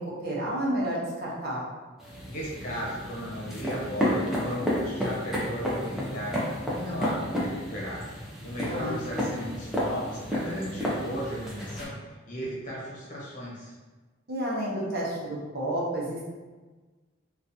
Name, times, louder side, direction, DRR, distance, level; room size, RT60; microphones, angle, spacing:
voice 1, 0.0-1.7 8.7-9.0 14.3-16.3, right 1 dB, 50° right, -5 dB, 0.8 m, -30 dB
sound 1, 2.0-11.8, equal, 5° right, 0.6 m, -31 dB
voice 2, 2.3-6.4 6.7-8.0 8.4-13.7, equal, 40° left, -6 dB, 1.0 m, -35 dB
3.8 x 2.5 x 2.7 m, 1.3 s
head